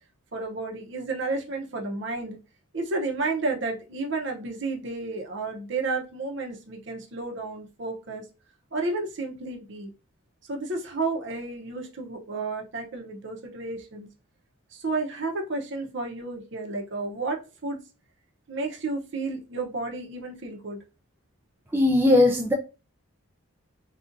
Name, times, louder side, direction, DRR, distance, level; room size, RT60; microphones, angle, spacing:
voice 1, 0.3-2.4 2.7-8.2 8.7-9.9 10.5-14.1 14.7-17.8 18.5-20.8, right 3 dB, 55° right, 1 dB, 0.7 m, -31 dB
voice 2, 21.7-22.5, left 2 dB, 10° right, 0 dB, 0.3 m, -19 dB
3.8 x 2.3 x 2.6 m, 0.31 s
head